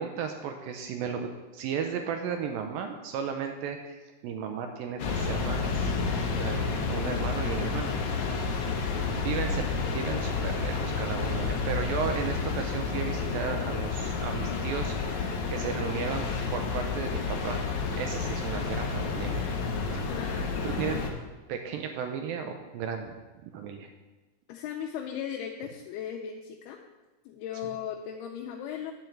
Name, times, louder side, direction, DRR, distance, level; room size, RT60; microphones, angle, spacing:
voice 1, 0.0-5.9 6.3-7.9 9.0-9.7 9.9-17.6 17.9-19.5 19.9-20.1 20.6-21.0 21.5-23.1 23.4-23.9, right 6 dB, 80° right, 5 dB, 2.1 m, -34 dB
sound 1, 5.0-21.1, left 4 dB, 65° left, 1.9 m, -30 dB
voice 2, 20.1-20.7 24.5-26.8 27.3-28.9, left 9 dB, 85° left, 1 dB, 2.6 m, -37 dB
10.5 x 4.5 x 7.6 m, 1.2 s
omnidirectional pair, 4.5 m